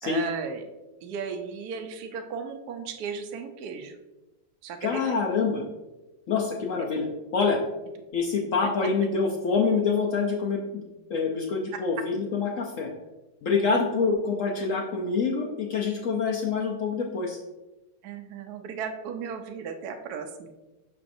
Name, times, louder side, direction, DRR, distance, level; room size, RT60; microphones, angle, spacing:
voice 1, 0.0-0.6 1.0-4.0 4.6-5.2 6.8-6.9 8.6-8.7 18.0-20.5, right 6 dB, 70° right, 5 dB, 1.0 m, -35 dB
voice 2, 4.8-5.6 6.3-7.1 7.3-7.6 8.1-10.8 11.1-12.9 13.4-17.4, left 5 dB, 80° left, 0 dB, 0.7 m, -26 dB
6.2 x 5.8 x 2.6 m, 1.1 s
omnidirectional pair, 2.1 m